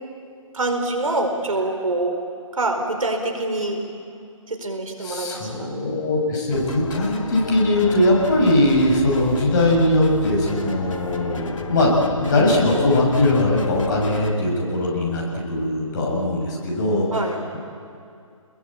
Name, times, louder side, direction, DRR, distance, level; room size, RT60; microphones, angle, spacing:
voice 1, 0.5-2.2 2.5-3.8 4.5-5.8 17.1-17.4, right 2 dB, 75° right, 4 dB, 4.9 m, -25 dB
voice 2, 5.0-11.9 12.2-17.2, left 1 dB, 35° left, -2 dB, 6.9 m, -20 dB
sound 1, 6.5-14.3, left 3 dB, 65° left, 2.3 m, -32 dB
29.0 x 21.5 x 8.8 m, 2.4 s
figure-of-eight pair, 150°, 18 cm